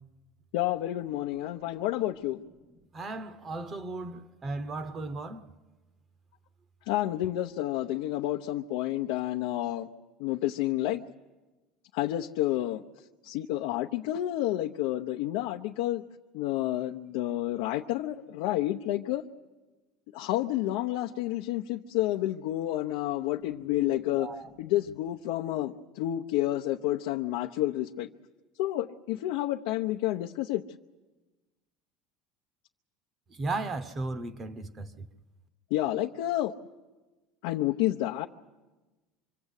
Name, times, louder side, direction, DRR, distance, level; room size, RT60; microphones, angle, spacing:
voice 1, 0.5-2.4 6.9-9.9 10.2-11.0 11.9-12.8 13.2-16.0 16.3-19.2 20.1-24.3 24.6-28.1 28.6-30.6 35.7-36.5 37.4-38.3, left 14 dB, 70° left, 0.8 m, -30 dB
voice 2, 2.9-5.4 24.2-24.5 33.3-35.1, right 3 dB, 20° right, 0.9 m, -36 dB
26.0 x 23.5 x 8.3 m
cardioid pair, 170°, 0 cm